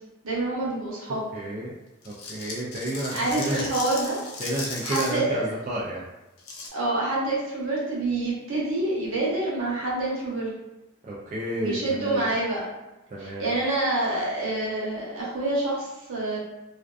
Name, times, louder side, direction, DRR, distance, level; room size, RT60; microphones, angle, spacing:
voice 1, 0.2-1.2 3.1-4.2 4.8-5.5 6.7-10.5 11.6-12.6 13.4-16.4, right 2 dB, 70° right, -5 dB, 0.9 m, -27 dB
voice 2, 1.3-1.7 2.0-3.7 4.4-6.1 11.0-12.3 13.1-13.5, right 1 dB, 35° right, -6 dB, 0.3 m, -31 dB
sound 1, 2.0-5.2 6.4-6.7, left 3 dB, 85° left, 0.5 m, -36 dB
2.4 x 2.2 x 2.3 m, 0.98 s
head